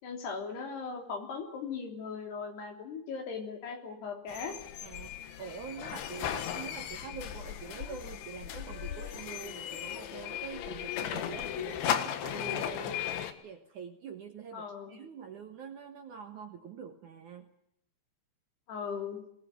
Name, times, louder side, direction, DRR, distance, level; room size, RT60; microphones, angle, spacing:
voice 1, 0.0-4.6 14.5-15.0 18.7-19.2, left 5 dB, 65° left, 4 dB, 5.3 m, -38 dB
sound 1, 4.3-13.3, left 10 dB, 85° left, 3.9 m, -36 dB
voice 2, 4.8-13.0 13.4-17.5, right 6 dB, 60° right, 5 dB, 2.2 m, -45 dB
21.0 x 19.0 x 9.4 m, 0.75 s
omnidirectional pair, 5.2 m